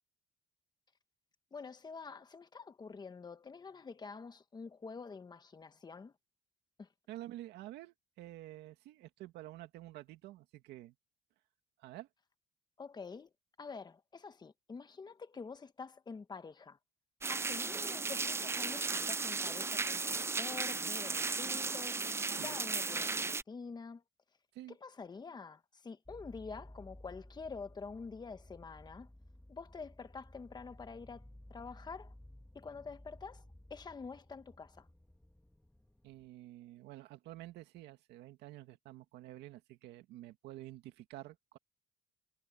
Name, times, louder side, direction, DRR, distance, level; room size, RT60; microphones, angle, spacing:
voice 1, 1.5-6.1 6.8-6.9 12.8-13.3 13.6-16.8 17.3-22.0 22.4-24.0 24.8-29.1 29.5-31.2 31.5-32.1 32.5-33.4 33.7-34.8, left 4 dB, 25° left, 1.3 m, -47 dB
voice 2, 7.1-10.9 11.8-12.1 22.3-22.6 24.5-24.8 36.0-41.6, right 15 dB, 85° right, 2.1 m, -50 dB
sound 1, 17.2-23.4, right 4 dB, 15° right, 0.4 m, -35 dB
sound 2, 26.1-36.3, left 1 dB, 5° left, 1.7 m, -56 dB
cardioid pair, 110°, 17 cm